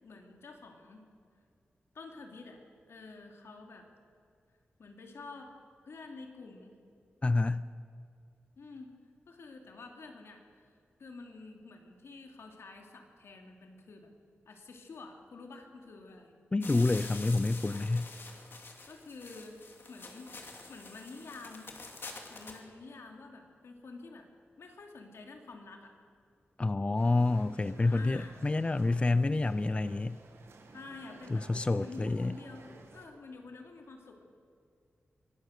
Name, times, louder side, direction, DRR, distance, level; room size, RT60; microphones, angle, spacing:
voice 1, 0.0-1.1 1.9-2.6 2.9-3.9 4.8-5.5 5.8-6.8 8.6-9.0 9.3-10.7 11.0-14.1 14.5-16.3 18.9-19.6 19.9-21.8 22.3-24.3 24.6-25.9 27.7-28.4 30.7-31.5 31.7-34.2, left 3 dB, 85° left, 3 dB, 2.7 m, -49 dB
voice 2, 7.2-7.6 16.5-18.1 26.6-30.2 31.3-32.3, left 2 dB, 25° left, 14 dB, 0.4 m, -28 dB
sound 1, 16.6-22.6, left 3 dB, 60° left, 2.7 m, -47 dB
sound 2, 27.0-33.1, right 3 dB, 90° right, 2.1 m, -54 dB
23.5 x 17.0 x 6.6 m, 2.3 s
wide cardioid pair, 105°, 4 cm